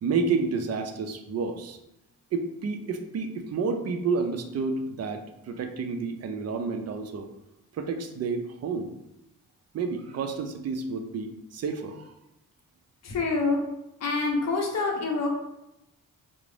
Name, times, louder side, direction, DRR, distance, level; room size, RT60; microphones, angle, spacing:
voice 1, 0.0-1.8 2.3-7.3 7.7-8.9 9.7-12.1, right 4 dB, 50° right, 6 dB, 0.4 m, -30 dB
voice 2, 13.0-13.6 14.0-15.3, left 3 dB, 50° left, 1 dB, 0.6 m, -26 dB
2.4 x 2.0 x 3.2 m, 0.86 s
cardioid pair, 80°, 34 cm